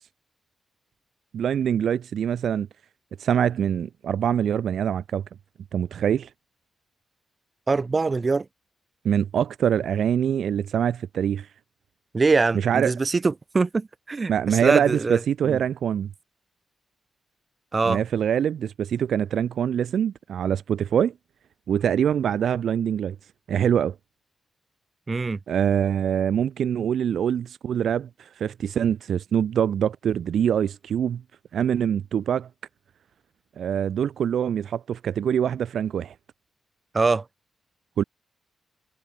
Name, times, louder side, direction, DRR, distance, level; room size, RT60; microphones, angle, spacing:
voice 1, 1.3-2.7 3.2-5.2 5.7-6.3 9.0-11.5 12.5-12.9 14.3-16.1 17.8-21.1 21.7-23.2 23.5-23.9 25.5-31.2 31.5-32.5 33.6-36.1 38.0-38.1, right 8 dB, 80° right, 1.0 m, -24 dB
voice 2, 7.7-8.5 12.1-15.6 17.7-18.0 25.1-25.4 36.9-37.2, right 4 dB, 40° right, 2.3 m, -23 dB
cardioid pair, 60°, 0 cm